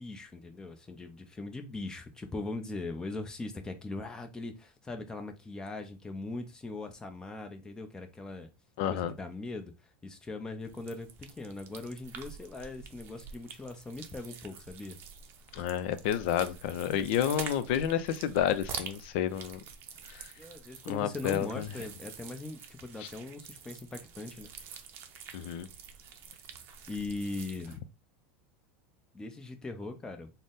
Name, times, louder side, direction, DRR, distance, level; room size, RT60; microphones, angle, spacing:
voice 1, 0.0-8.5 8.9-9.7 10.0-15.0 20.4-24.5 26.9-27.8 29.1-30.3, left 2 dB, 10° left, 0.6 m, -40 dB
voice 2, 8.8-9.1 15.5-19.6 20.1-20.3 20.9-21.7 23.0-23.1 25.3-25.7, left 10 dB, 65° left, 0.5 m, -30 dB
sound 1, 10.6-27.8, right 7 dB, 40° right, 0.6 m, -47 dB
3.9 x 2.1 x 3.6 m
supercardioid pair, 135°, 6 cm